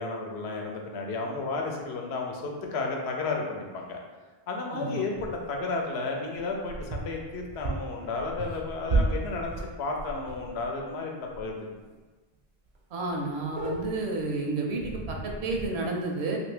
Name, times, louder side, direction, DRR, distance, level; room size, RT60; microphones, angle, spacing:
voice 1, 0.0-4.0 4.5-11.7, left 3 dB, 85° left, 1 dB, 0.8 m, -33 dB
voice 2, 4.7-5.0 12.9-16.4, right 2 dB, 85° right, 1 dB, 0.8 m, -31 dB
sound 1, 5.2-5.6 6.3-10.9 11.3-11.5 11.8-11.9 12.3-12.4 12.7-12.8 13.1-14.2 14.8-15.7, right 2 dB, 55° right, 0.5 m, -33 dB
2.8 x 2.6 x 3.2 m, 1.3 s
omnidirectional pair, 1.1 m